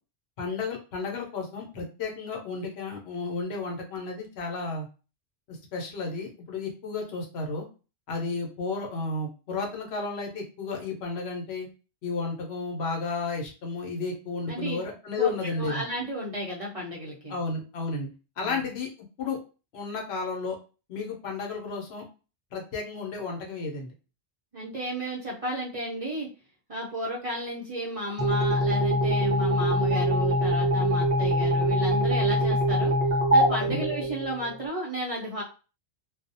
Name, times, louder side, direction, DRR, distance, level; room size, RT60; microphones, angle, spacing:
voice 1, 0.4-4.9 5.5-7.7 8.1-11.7 12.0-15.8 17.3-18.1 18.4-18.9 19.2-19.4 19.7-20.6 20.9-22.0 22.5-23.9 33.7-33.9, left 4 dB, 75° left, 1 dB, 0.9 m, -32 dB
voice 2, 15.2-17.3 18.4-18.7 24.5-26.3 26.7-32.9 33.3-35.4, equal, 40° right, -4 dB, 0.6 m, -33 dB
sound 1, 28.2-34.7, equal, 15° left, 0.6 m, -24 dB
2.3 x 2.0 x 2.6 m, 0.34 s
omnidirectional pair, 1.1 m